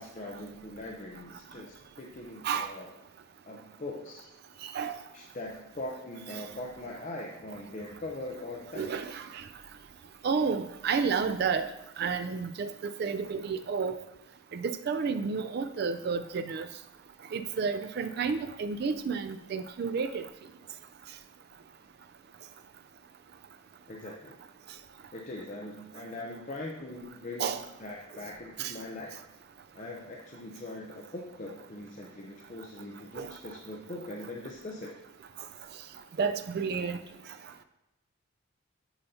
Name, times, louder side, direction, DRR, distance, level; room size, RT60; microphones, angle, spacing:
voice 1, 0.0-2.9 3.5-4.3 5.1-9.0 23.9-24.4 25.1-27.5 27.8-29.1 29.7-34.9, left 2 dB, 35° left, -1 dB, 0.6 m, -41 dB
voice 2, 4.6-5.0 8.7-9.4 10.2-11.7 12.0-13.9 14.5-16.7 17.3-20.3 27.4-27.6 28.6-28.7 33.2-33.3 36.2-37.0, right 5 dB, 50° right, 9 dB, 0.3 m, -31 dB
8.7 x 5.6 x 2.7 m, 0.94 s
head